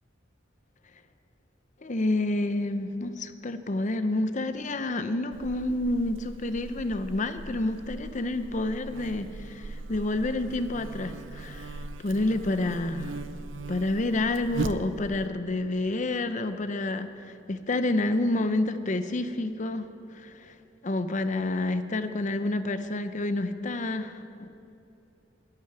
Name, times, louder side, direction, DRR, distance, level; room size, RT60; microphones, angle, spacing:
voice 1, 1.8-13.2 13.7-19.9 20.1-20.5 20.8-24.5, left 2 dB, 40° left, 10 dB, 0.7 m, -29 dB
Buzz, 5.3-15.3, right 3 dB, 90° right, 0.6 m, -39 dB
10.5 x 10.0 x 9.2 m, 2.8 s
head